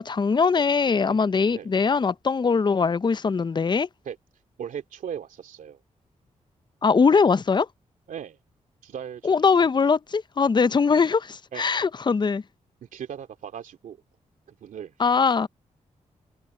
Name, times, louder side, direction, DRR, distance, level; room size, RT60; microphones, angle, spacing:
voice 1, 0.0-3.9 6.8-7.7 9.2-12.4 15.0-15.5, left 5 dB, 35° left, 0.6 m, -21 dB
voice 2, 1.1-1.7 4.0-4.2 4.6-5.8 8.1-8.4 8.8-9.7 11.5-11.6 12.8-14.0 14.5-14.9, right 8 dB, 80° right, 2.8 m, -38 dB
cardioid pair, 55°, 13 cm